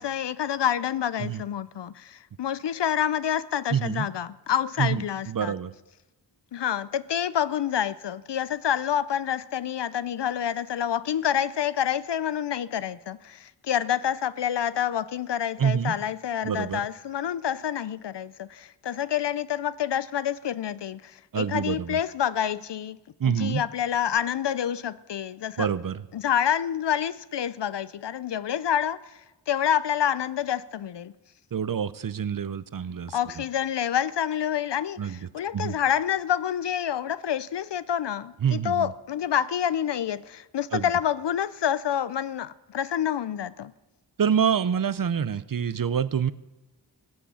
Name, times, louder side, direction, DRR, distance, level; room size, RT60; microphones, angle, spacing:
voice 1, 0.0-5.5 6.5-23.0 23.2-25.7 26.1-29.0 29.5-31.1 33.1-43.7, left 9 dB, 70° left, 0.5 m, -28 dB
voice 2, 3.7-4.1 4.8-5.7 15.6-15.9 16.4-16.8 21.3-22.0 23.2-23.6 25.6-26.0 31.5-33.2 35.0-35.8 38.4-38.9 40.7-40.9 44.2-46.3, right 8 dB, 50° right, 0.6 m, -27 dB
16.5 x 8.5 x 7.1 m
wide cardioid pair, 55°, 44 cm